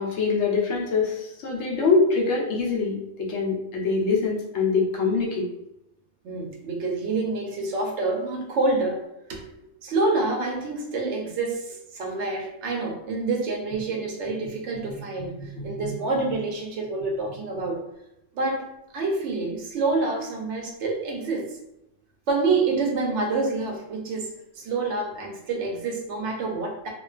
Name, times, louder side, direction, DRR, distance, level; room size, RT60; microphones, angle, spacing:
voice 1, 0.0-5.5 14.9-15.9, left 4 dB, 70° left, -2 dB, 0.9 m, -24 dB
voice 2, 6.2-9.0 9.3-17.8 18.3-18.7 18.9-21.6 22.3-26.9, right 3 dB, 70° right, 1 dB, 0.9 m, -27 dB
2.4 x 2.2 x 2.3 m, 0.88 s
omnidirectional pair, 1.3 m